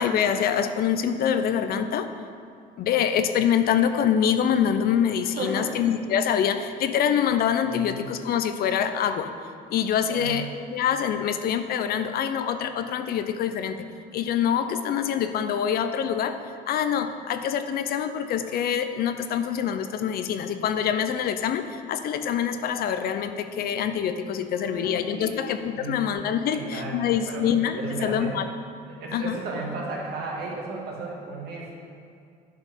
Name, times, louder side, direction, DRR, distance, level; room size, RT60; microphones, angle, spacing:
voice 1, 0.0-2.1 2.8-9.3 9.7-10.5 10.7-13.9 14.1-16.4 16.7-28.4 29.1-29.4, left 8 dB, 65° left, 9 dB, 0.6 m, -25 dB
voice 2, 5.4-5.7 7.7-8.0 10.1-10.5 24.5-25.3 25.7-26.1 26.5-27.5 27.8-28.4 28.9-31.7, right 3 dB, 70° right, -2 dB, 2.0 m, -34 dB
9.9 x 5.3 x 5.3 m, 2.4 s
cardioid pair, 110°, 17 cm